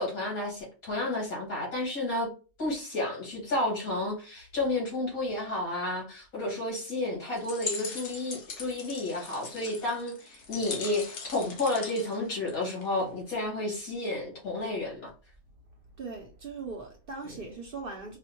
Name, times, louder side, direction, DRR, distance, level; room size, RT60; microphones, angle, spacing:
voice 1, 0.0-2.3 2.6-15.1 17.3-17.4, left 2 dB, 85° left, 2.3 m, -31 dB
sound 1, 7.4-13.0, left 4 dB, 60° left, 1.0 m, -40 dB
voice 2, 16.0-18.2, right 4 dB, 60° right, 0.6 m, -39 dB
4.8 x 2.1 x 2.9 m
omnidirectional pair, 1.5 m